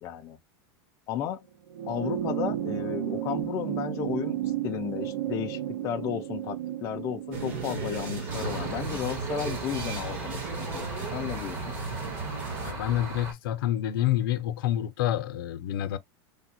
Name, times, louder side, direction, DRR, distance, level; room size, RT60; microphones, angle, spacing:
voice 1, 0.0-0.4 1.1-1.5 1.8-4.4 4.6-11.7, left 10 dB, 25° left, 0.3 m, -34 dB
sound 1, 1.7-10.4 11.6-11.7, right 12 dB, 70° right, 1.1 m, -34 dB
sound 2, 7.3-12.7, right 5 dB, 50° right, 1.4 m, -36 dB
sound 3, 8.3-13.3, right 3 dB, 20° right, 0.8 m, -37 dB
voice 2, 12.6-16.0, left 12 dB, 70° left, 0.6 m, -28 dB
3.3 x 2.1 x 2.7 m
supercardioid pair, 170°, 12 cm